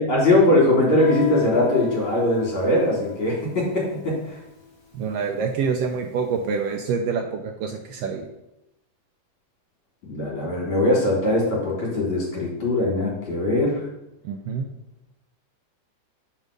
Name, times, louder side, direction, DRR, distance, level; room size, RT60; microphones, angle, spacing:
voice 1, 0.0-4.4 10.1-13.8, left 1 dB, 45° left, -5 dB, 3.6 m, -21 dB
Guitar, 1.0-6.4, left 5 dB, 20° left, 2.1 m, -40 dB
voice 2, 4.9-8.3 14.2-14.7, right 5 dB, 80° right, 4 dB, 1.4 m, -26 dB
6.6 x 4.8 x 5.1 m, 0.89 s
omnidirectional pair, 3.4 m